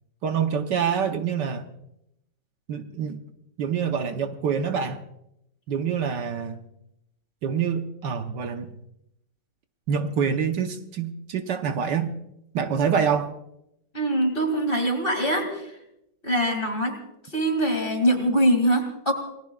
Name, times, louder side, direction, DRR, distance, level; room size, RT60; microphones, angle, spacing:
voice 1, 0.2-1.7 2.7-3.2 3.6-5.0 5.7-6.6 7.4-8.7 9.9-12.1 12.5-13.3, right 7 dB, 70° right, 7 dB, 1.5 m, -26 dB
voice 2, 13.9-15.8 16.2-17.0 17.3-19.1, right 1 dB, 30° left, 4 dB, 2.5 m, -23 dB
28.0 x 19.0 x 2.3 m, 0.82 s
omnidirectional pair, 2.0 m